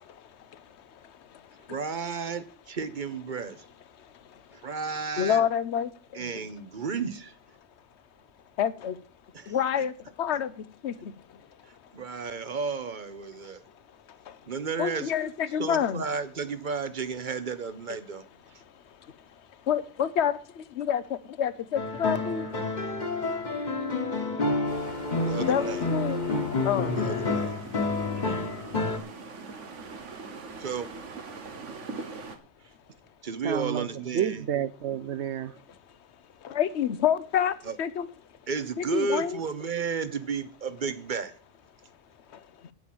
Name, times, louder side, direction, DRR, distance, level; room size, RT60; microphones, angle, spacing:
voice 1, 1.7-3.6 4.5-5.4 6.1-7.3 9.3-9.6 11.9-13.6 14.5-15.1 15.6-18.2 25.2-25.9 27.0-27.6 28.1-28.5 30.6-30.9 33.2-34.4 37.6-37.8 38.5-41.3, right 5 dB, 45° right, 1.0 m, -33 dB
voice 2, 5.2-5.9 8.6-8.9 9.5-9.9 10.2-10.5 10.8-10.9 14.8-16.1 19.7-20.4 20.8-21.0 21.4-22.5 25.5-26.2 26.6-27.0 36.5-37.5 37.8-38.1 38.8-39.4, left 8 dB, 70° left, 1.0 m, -27 dB
sound 1, 21.7-29.0, left 3 dB, 40° left, 1.4 m, -29 dB
sound 2, 24.7-32.4, right 4 dB, 85° right, 1.6 m, -43 dB
voice 3, 33.4-35.6, right 9 dB, 70° right, 1.0 m, -30 dB
9.1 x 7.6 x 7.8 m
omnidirectional pair, 1.2 m